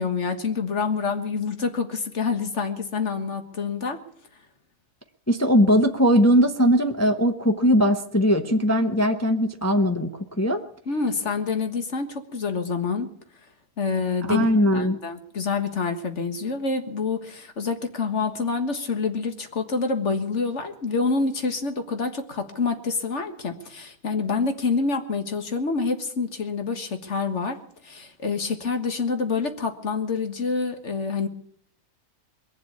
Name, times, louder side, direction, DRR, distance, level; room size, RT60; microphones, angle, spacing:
voice 1, 0.0-4.0 10.9-13.1 13.8-14.4 14.7-27.6 27.8-31.3, left 4 dB, 55° left, 7 dB, 1.8 m, -27 dB
voice 2, 5.3-10.1 10.4-10.6 14.3-15.0, equal, 15° left, 5 dB, 0.8 m, -20 dB
22.0 x 7.5 x 8.4 m, 0.64 s
omnidirectional pair, 1.5 m